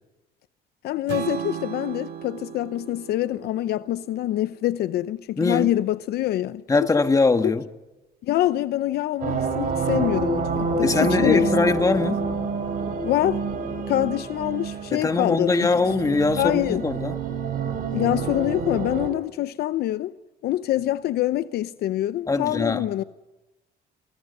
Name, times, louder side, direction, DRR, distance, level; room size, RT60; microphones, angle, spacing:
voice 1, 0.8-6.6 7.4-7.5 8.2-11.5 12.0-12.1 13.0-13.4 13.9-15.7 16.4-16.9 17.9-20.1 20.4-23.0, left 14 dB, 70° left, 0.7 m, -25 dB
Strum, 1.1-5.3, right 9 dB, 80° right, 3.0 m, -36 dB
voice 2, 5.4-5.7 6.7-7.6 9.9-10.0 10.8-12.2 14.9-17.2 22.3-22.9, left 3 dB, 20° left, 1.7 m, -22 dB
sound 1, 9.2-19.1, right 4 dB, 55° right, 5.4 m, -28 dB
30.0 x 24.0 x 5.5 m
cardioid pair, 110°, 17 cm